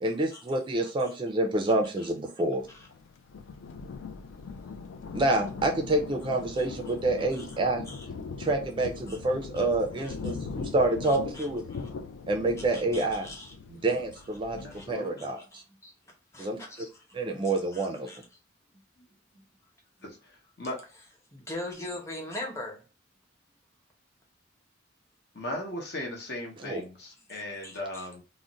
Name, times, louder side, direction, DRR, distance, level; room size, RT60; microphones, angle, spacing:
voice 1, 0.0-2.6 5.1-7.8 8.4-11.6 12.3-13.3 13.7-14.6 14.9-15.4 16.4-16.6 17.1-18.1 26.7-26.8, right 2 dB, 25° right, 3 dB, 0.4 m, -27 dB
voice 2, 0.8-1.1 2.0-2.1 2.7-2.9 4.3-4.4 6.6-6.9 7.3-8.1 9.1-9.2 9.5-9.7 10.0-10.3 11.0-11.9 12.6-13.5 14.5-14.9 15.2-15.9 16.3-18.2 19.0-19.1 19.3-19.4 21.3-22.8 27.6-28.1, left 1 dB, 15° left, 0 dB, 0.8 m, -43 dB
Thunder, 2.6-14.9, left 5 dB, 85° left, 0.4 m, -40 dB
voice 3, 14.6-15.3 20.0-20.8 25.3-28.2, left 1 dB, 60° left, 1 dB, 0.8 m, -38 dB
2.4 x 2.1 x 3.7 m, 0.32 s
head